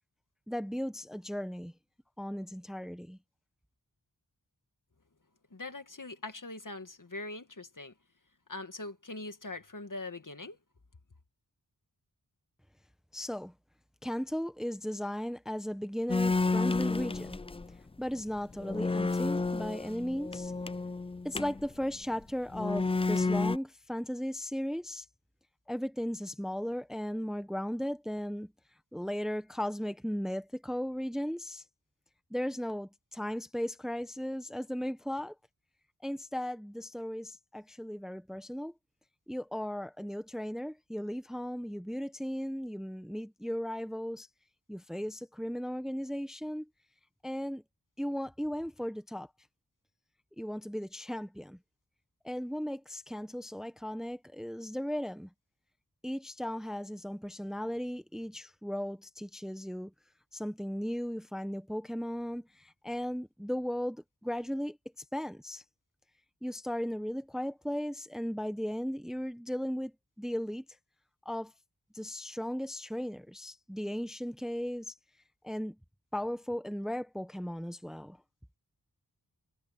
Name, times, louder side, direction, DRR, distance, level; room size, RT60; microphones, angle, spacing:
voice 1, 0.5-1.7 2.2-3.2 13.1-13.5 14.0-17.4 18.0-20.5 21.2-25.0 25.7-28.5 28.9-31.6 32.3-35.3 36.0-38.7 39.3-44.3 44.7-46.6 47.2-47.6 48.0-49.3 50.4-51.6 52.2-55.3 56.0-59.9 60.3-64.8 65.1-65.6 66.4-69.9 70.2-70.6 71.2-71.5 71.9-74.9 75.4-75.8 76.1-78.2, equal, ahead, 1.1 m, -36 dB
voice 2, 5.5-7.9 8.5-10.6, left 2 dB, 50° left, 2.0 m, -42 dB
sound 1, 16.1-17.7 18.2-18.3 18.6-21.7 22.5-23.6, left 3 dB, 15° left, 0.3 m, -31 dB
wide cardioid pair, 50°, 39 cm